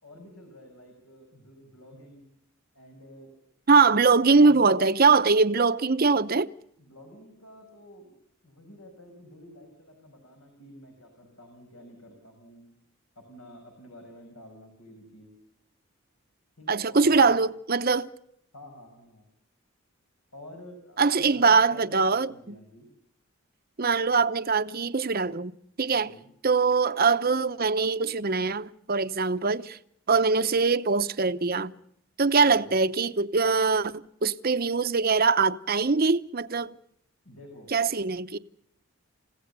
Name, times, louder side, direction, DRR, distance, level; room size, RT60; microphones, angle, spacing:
voice 1, 0.0-2.2 2.7-3.3 4.4-4.8 6.8-8.2 8.4-12.7 13.2-15.3 16.6-17.4 18.5-19.2 20.3-21.0 21.3-22.9 26.0-26.3 32.4-32.8 37.2-37.7, left 1 dB, 80° left, 5.9 m, -49 dB
voice 2, 3.7-6.5 16.7-18.1 21.0-22.5 23.8-25.5 25.8-26.1 26.4-29.8 30.1-31.7 32.2-36.7 37.7-38.4, right 4 dB, 40° right, 0.8 m, -22 dB
29.5 x 16.5 x 6.8 m
head